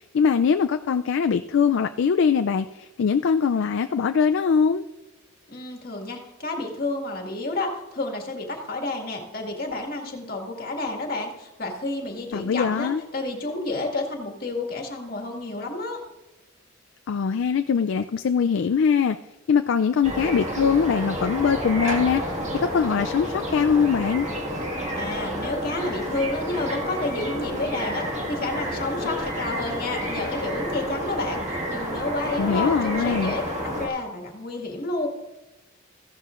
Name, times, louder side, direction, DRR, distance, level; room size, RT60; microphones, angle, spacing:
voice 1, 0.1-4.8 12.3-13.0 17.1-19.2 19.5-22.2 22.7-24.3 32.4-33.3, left 6 dB, 65° left, 8 dB, 0.4 m, -22 dB
voice 2, 5.5-16.0 25.0-35.1, left 2 dB, 45° left, 1 dB, 1.9 m, -30 dB
sound 1, 20.0-33.9, equal, 35° right, 1.8 m, -30 dB
15.0 x 12.0 x 2.5 m, 1.0 s
head